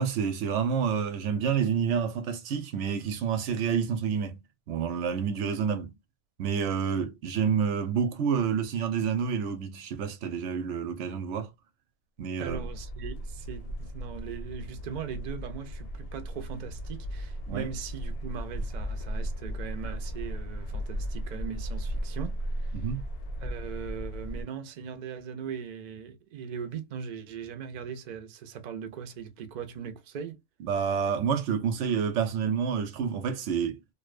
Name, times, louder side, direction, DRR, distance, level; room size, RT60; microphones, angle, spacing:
voice 1, 0.0-4.4 4.7-6.0 6.4-11.5 12.2-12.7 17.5-17.7 22.7-23.0 30.6-33.8, right 7 dB, 85° right, 0.9 m, -28 dB
sound 1, 12.4-24.4, equal, 65° left, 0.8 m, -36 dB
voice 2, 12.4-22.9 23.4-30.4, right 7 dB, 55° right, 0.5 m, -39 dB
2.6 x 2.1 x 2.3 m
omnidirectional pair, 1.2 m